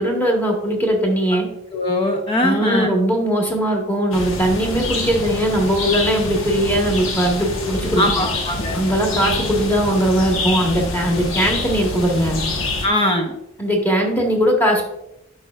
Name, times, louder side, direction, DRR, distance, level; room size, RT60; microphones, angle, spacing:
voice 1, 0.0-1.5 2.4-8.2 8.7-12.4 13.6-14.9, equal, 10° left, 0 dB, 1.2 m, -19 dB
voice 2, 1.7-2.9 8.0-8.8 12.8-13.3, left 1 dB, 25° left, 3 dB, 0.5 m, -20 dB
sound 1, 4.1-12.9, left 2 dB, 75° left, 1.1 m, -26 dB
9.3 x 5.5 x 2.4 m, 0.84 s
head